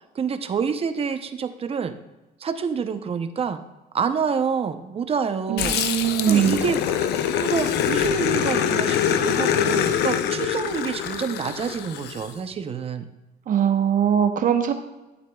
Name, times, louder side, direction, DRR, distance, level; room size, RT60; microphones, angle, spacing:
voice 1, 0.1-2.0 2.4-3.6 3.9-5.8 6.3-6.9 7.4-13.1, right 6 dB, 35° right, 9 dB, 0.8 m, -27 dB
voice 2, 5.5-6.6 13.5-14.7, right 9 dB, 55° right, 7 dB, 1.0 m, -21 dB
Growling, 5.6-12.3, left 9 dB, 75° left, 0.7 m, -24 dB
12.5 x 8.2 x 2.3 m, 1.1 s
cardioid pair, 110°, 17 cm